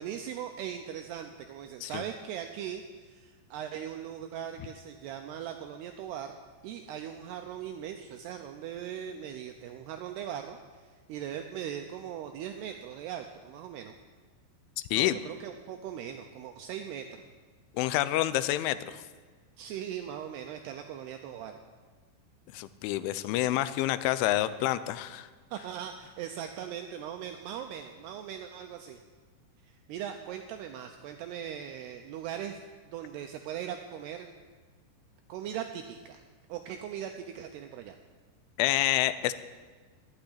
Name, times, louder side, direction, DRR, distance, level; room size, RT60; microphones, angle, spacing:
voice 1, 0.0-6.4 6.6-13.9 14.9-17.2 19.6-21.6 25.5-29.0 29.6-32.6 32.9-34.4 35.3-36.2 36.5-38.0, right 9 dB, 85° right, 5 dB, 2.4 m, -39 dB
voice 2, 17.7-19.0 22.5-25.3 38.6-39.3, left 14 dB, 85° left, 15 dB, 3.1 m, -28 dB
12.0 x 9.2 x 9.9 m, 1.4 s
omnidirectional pair, 5.5 m